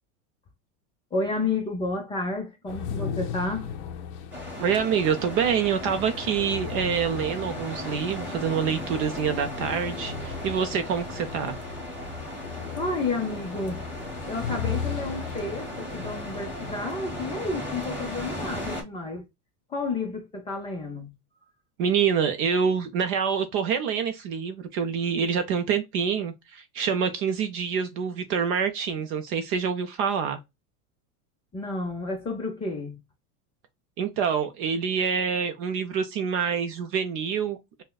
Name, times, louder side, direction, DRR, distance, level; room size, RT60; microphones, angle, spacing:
voice 1, 1.1-3.7 12.8-13.8 14.3-19.2 19.7-21.1 31.5-33.0, left 3 dB, 10° left, 0.5 m, -31 dB
sound 1, 2.7-16.8, left 7 dB, 45° left, 0.7 m, -37 dB
sound 2, 4.3-18.8, left 1 dB, 5° right, 1.1 m, -36 dB
voice 2, 4.6-11.6 21.8-30.4 34.0-37.8, right 7 dB, 35° right, 0.5 m, -26 dB
6.0 x 2.2 x 2.2 m
supercardioid pair, 165°, 45 cm